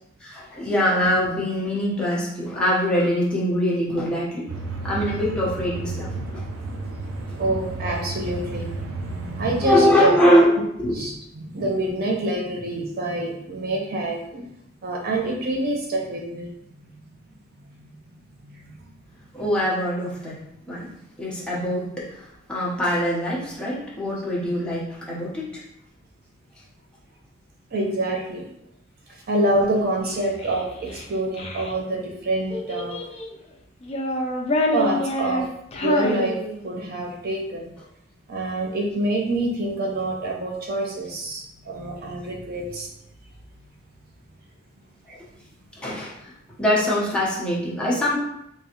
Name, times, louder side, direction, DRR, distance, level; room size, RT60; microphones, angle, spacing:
voice 1, 0.2-4.5 4.8-6.4 9.6-11.0 19.3-20.3 20.7-20.9 21.2-22.2 22.5-25.5 45.8-46.1 46.6-48.2, equal, 5° left, -7 dB, 1.0 m, -22 dB
sound 1, 4.5-9.7, right 3 dB, 90° right, 0.6 m, -32 dB
voice 2, 7.4-10.2 10.9-14.5 14.8-16.5 27.7-28.5 29.3-33.0 34.7-35.5 35.7-37.7 38.3-42.9, right 1 dB, 50° right, 0 dB, 0.6 m, -26 dB
Child speech kid speaking, 30.1-31.7 32.5-33.4 33.8-36.9, left 1 dB, 30° left, 0.5 m, -27 dB
3.6 x 3.1 x 3.0 m, 0.78 s
head